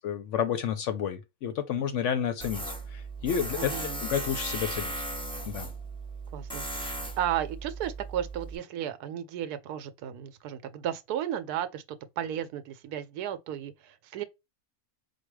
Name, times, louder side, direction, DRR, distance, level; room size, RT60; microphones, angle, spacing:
voice 1, 0.0-3.7 4.0-4.9 5.5-5.7, left 8 dB, 65° left, 0.8 m, -30 dB
Tools, 2.4-8.6, right 2 dB, 5° left, 0.5 m, -37 dB
voice 2, 3.6-4.0 6.3-14.2, right 10 dB, 85° right, 1.1 m, -34 dB
4.2 x 2.3 x 4.7 m
omnidirectional pair, 1.6 m